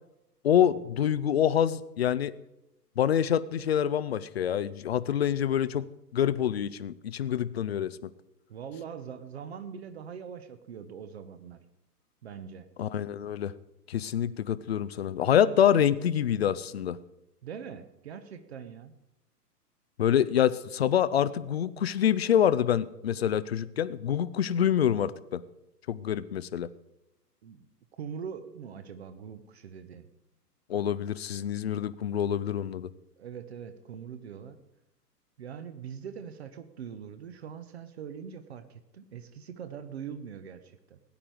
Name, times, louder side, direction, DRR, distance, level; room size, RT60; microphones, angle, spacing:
voice 1, 0.4-2.3 3.0-5.9 6.1-8.1 12.8-13.5 13.9-17.0 20.0-25.4 25.9-26.7 30.7-32.9, left 9 dB, 40° left, 17 dB, 0.6 m, -26 dB
voice 2, 8.5-11.6 12.2-12.7 17.4-18.9 27.4-27.7 28.0-30.1 33.2-34.6 35.4-41.0, right 7 dB, 40° right, 10 dB, 1.0 m, -42 dB
17.0 x 10.0 x 4.7 m, 0.88 s
figure-of-eight pair, 120°, 49 cm